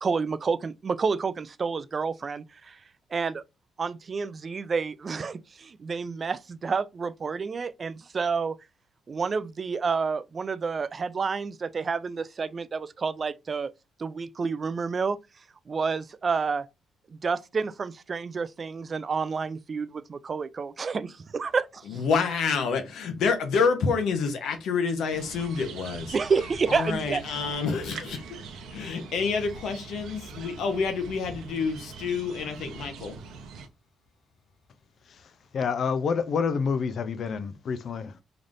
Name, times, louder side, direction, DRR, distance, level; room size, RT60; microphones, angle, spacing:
voice 1, 0.0-2.8 3.1-3.4 3.8-8.6 9.1-13.7 14.0-15.2 15.7-16.7 17.2-22.0 26.1-27.2, right 5 dB, 40° right, 0.3 m, -29 dB
voice 2, 21.9-26.1 26.7-27.9 28.7-33.1, left 5 dB, 75° left, 0.9 m, -28 dB
sound 1, 25.1-33.7, right 5 dB, 80° right, 0.7 m, -43 dB
voice 3, 35.1-38.2, left 5 dB, 60° left, 0.5 m, -28 dB
3.9 x 3.3 x 2.5 m
cardioid pair, 90°, 0 cm